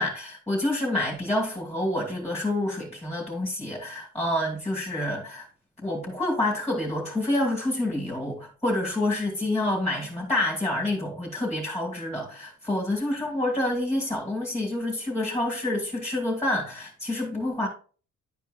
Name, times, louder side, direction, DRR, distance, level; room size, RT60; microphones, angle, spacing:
voice 1, 0.0-5.5 5.8-17.7, left 1 dB, 5° left, 2.3 m, -28 dB
10.5 x 4.6 x 2.5 m
cardioid pair, 90°, 30 cm